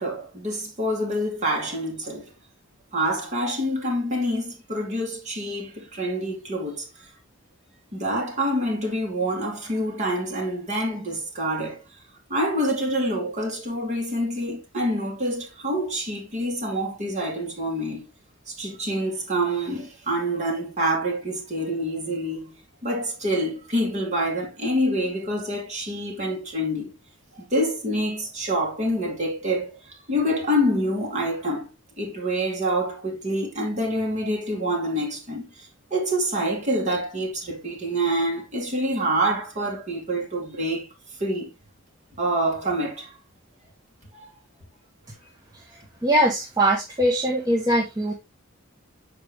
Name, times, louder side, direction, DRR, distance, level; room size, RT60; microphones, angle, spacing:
voice 1, 0.0-2.3 2.9-6.8 7.9-11.8 12.3-18.1 18.5-22.5 22.8-26.9 27.4-31.7 32.0-40.9 41.2-41.5 42.2-43.1 44.1-44.3, equal, 35° right, 2.4 m, -26 dB
voice 2, 46.0-48.1, right 1 dB, 20° right, 1.0 m, -22 dB
6.7 x 4.7 x 3.4 m
head